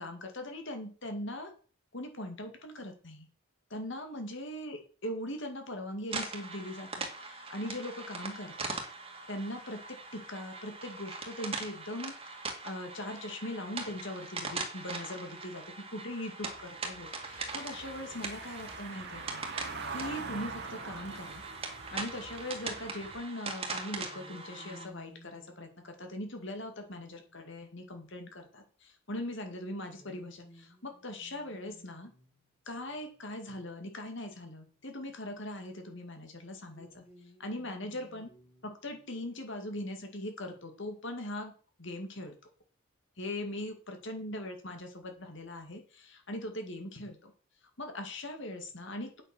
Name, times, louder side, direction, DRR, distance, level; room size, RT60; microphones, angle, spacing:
voice 1, 0.0-1.5 1.9-3.3 3.7-8.7 9.3-15.6 15.9-19.4 19.9-21.4 21.9-32.1 32.7-37.0 37.4-38.3 38.6-41.5 41.8-42.3 43.2-47.3 47.8-49.2, left 1 dB, 60° left, 5 dB, 2.3 m, -40 dB
sound 1, 6.1-24.9, right 3 dB, 25° right, 2.3 m, -41 dB
Car passing by / Engine, 16.4-23.2, right 4 dB, 50° right, 1.8 m, -44 dB
sound 2, 24.1-28.1 29.9-35.2 36.6-39.1, equal, 25° left, 2.9 m, -59 dB
9.1 x 7.9 x 6.2 m, 0.40 s
head